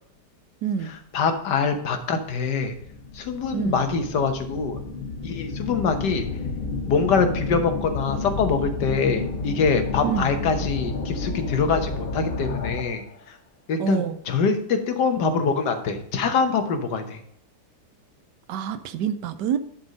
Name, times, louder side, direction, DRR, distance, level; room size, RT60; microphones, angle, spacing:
voice 1, 0.6-0.9 3.5-3.9 10.0-10.3 13.8-14.2 18.5-19.6, right 8 dB, 80° right, 11 dB, 1.2 m, -27 dB
voice 2, 1.1-2.7 3.1-4.8 5.2-6.3 6.9-13.0 13.3-13.4 13.7-17.2, left 5 dB, 75° left, 7 dB, 1.6 m, -24 dB
sound 1, 2.7-13.1, left 4 dB, 40° left, 0.8 m, -31 dB
11.0 x 4.4 x 5.2 m, 0.71 s
omnidirectional pair, 1.9 m